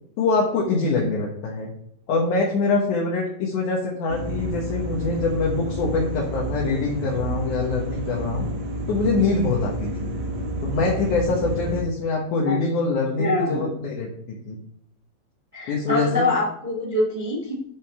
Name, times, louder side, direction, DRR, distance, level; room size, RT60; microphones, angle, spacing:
voice 1, 0.2-1.7 2.1-8.5 8.9-10.1 10.6-14.6 15.7-16.3, left 3 dB, 60° left, -3 dB, 2.2 m, -24 dB
sound 1, 4.1-11.8, right 1 dB, 80° right, 3.9 m, -30 dB
voice 2, 13.2-13.7 15.5-17.5, left 2 dB, 25° right, -3 dB, 0.8 m, -24 dB
12.0 x 5.3 x 3.7 m, 0.71 s
omnidirectional pair, 5.0 m